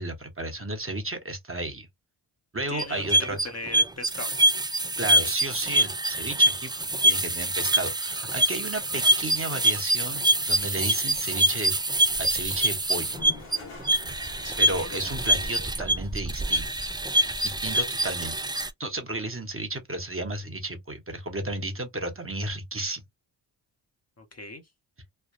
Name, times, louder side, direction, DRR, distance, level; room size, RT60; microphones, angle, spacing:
voice 1, 0.0-1.9 2.5-3.5 5.0-6.7 7.0-11.7 12.2-13.2 14.6-16.7 17.4-18.3 18.8-23.0, right 2 dB, 25° right, 1.2 m, -33 dB
voice 2, 2.7-4.3 14.4-14.9 24.2-24.6, left 2 dB, 30° left, 1.0 m, -38 dB
sound 1, 2.8-18.7, right 1 dB, 10° right, 0.4 m, -25 dB
Toilet flush, 12.8-15.9, left 4 dB, 85° left, 1.4 m, -45 dB
3.3 x 2.2 x 2.4 m
cardioid pair, 45°, 49 cm